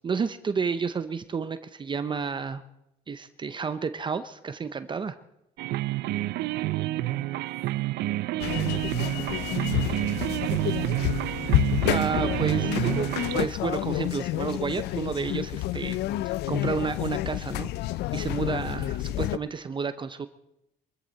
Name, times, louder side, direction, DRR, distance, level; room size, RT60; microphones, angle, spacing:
voice 1, 0.0-2.6 3.1-5.2 11.9-16.0 16.2-20.3, right 5 dB, 30° right, 11 dB, 0.7 m, -31 dB
sound 1, 5.6-13.5, right 17 dB, 80° right, 0.5 m, -28 dB
voice 2, 6.9-8.0 8.6-11.8, left 2 dB, 45° left, 1 dB, 6.2 m, -53 dB
sound 2, 8.4-19.4, left 15 dB, 80° left, 0.5 m, -29 dB
23.5 x 14.0 x 4.1 m, 0.84 s
cardioid pair, 110°, 17 cm